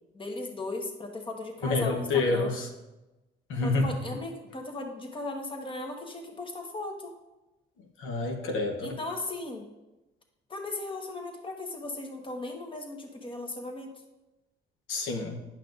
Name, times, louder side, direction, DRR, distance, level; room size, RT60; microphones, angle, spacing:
voice 1, 0.1-2.5 3.6-7.1 8.8-9.6 10.5-13.9, left 2 dB, 25° left, 2 dB, 1.2 m, -37 dB
voice 2, 1.6-2.7 3.5-3.9 8.0-9.0 14.9-15.4, left 3 dB, 85° left, 2 dB, 0.9 m, -28 dB
10.0 x 5.7 x 2.5 m, 1.0 s
cardioid pair, 90°, 20 cm